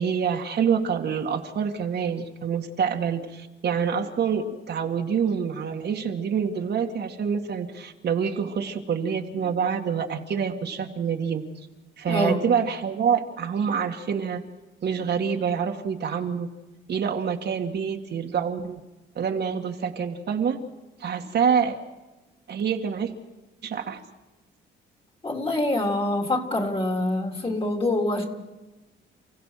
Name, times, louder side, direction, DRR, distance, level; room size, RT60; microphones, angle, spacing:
voice 1, 0.0-11.4 12.0-14.4 14.8-16.5 16.9-18.8 19.2-20.6 21.0-21.8 22.5-23.1 23.6-24.0, right 7 dB, 60° right, 3 dB, 2.2 m, -26 dB
voice 2, 12.1-12.4 25.2-28.3, left 1 dB, 25° left, 3 dB, 3.8 m, -25 dB
30.0 x 16.0 x 5.9 m, 1.1 s
cardioid pair, 90°, 20 cm